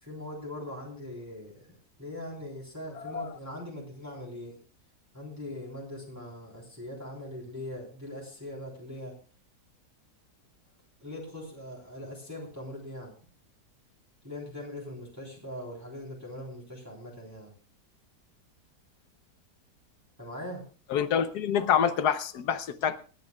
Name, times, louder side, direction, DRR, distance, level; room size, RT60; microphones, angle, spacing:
voice 1, 0.0-4.6 5.1-9.2 11.0-13.1 14.2-17.5 20.2-20.6, left 1 dB, 10° right, -3 dB, 3.5 m, -41 dB
voice 2, 20.9-23.0, left 8 dB, 65° left, 12 dB, 1.3 m, -26 dB
27.5 x 9.5 x 2.3 m, 0.37 s
omnidirectional pair, 1.9 m